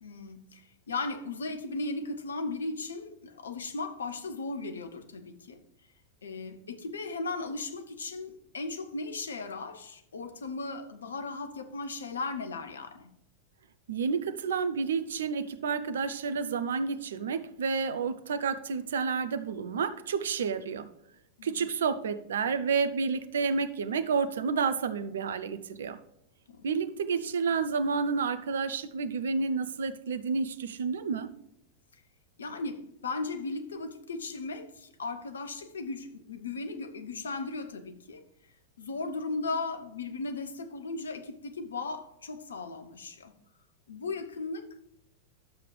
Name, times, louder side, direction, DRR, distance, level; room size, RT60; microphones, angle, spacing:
voice 1, 0.0-5.6 6.2-13.1 21.4-21.6 26.5-26.6 32.4-38.2 38.8-43.3 43.9-44.9, left 3 dB, 70° left, 1.0 m, -37 dB
voice 2, 13.9-20.9 21.4-26.0 26.6-31.3, right 5 dB, 65° right, 0.7 m, -30 dB
11.5 x 7.5 x 3.3 m
figure-of-eight pair, 90°, 0 cm